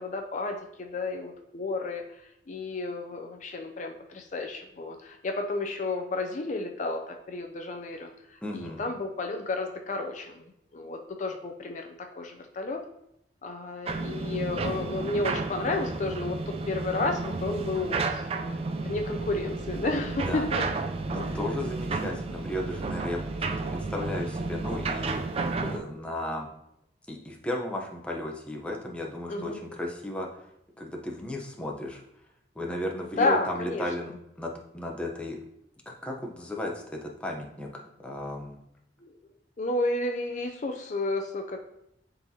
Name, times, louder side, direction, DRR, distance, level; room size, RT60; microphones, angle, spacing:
voice 1, 0.0-2.0 2.5-8.1 8.5-10.5 10.7-11.9 12.2-12.8 13.4-20.6 21.2-21.4 25.6-25.9 29.3-29.6 33.2-33.8 39.0-39.1 39.6-41.6, left 2 dB, 45° left, 4 dB, 0.5 m, -31 dB
voice 2, 8.4-8.9 20.2-20.5 21.1-26.5 27.1-30.4 30.8-32.0 32.6-34.1 34.4-35.4 35.9-38.6, left 1 dB, 5° left, 0 dB, 0.8 m, -35 dB
sound 1, 13.9-25.8, right 3 dB, 35° right, 0.4 m, -32 dB
9.6 x 4.0 x 2.8 m, 0.79 s
head